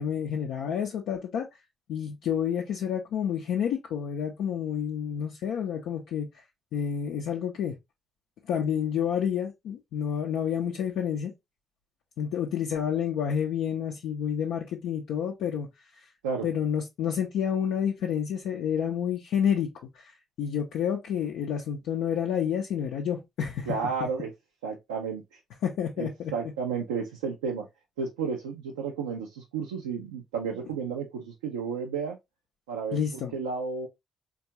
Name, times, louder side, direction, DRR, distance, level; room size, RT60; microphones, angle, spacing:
voice 1, 0.0-1.5 1.9-6.3 6.7-7.8 8.5-11.3 12.2-15.7 16.0-16.1 16.4-19.7 19.9-23.7 24.0-24.1 25.6-26.3 32.9-33.3, left 8 dB, 70° left, 0.4 m, -29 dB
voice 2, 23.7-24.3 24.6-25.4 26.0-27.7 28.0-32.2 32.7-33.9, right 5 dB, 85° right, 0.4 m, -32 dB
3.5 x 2.3 x 2.7 m
hypercardioid pair, 45°, 0 cm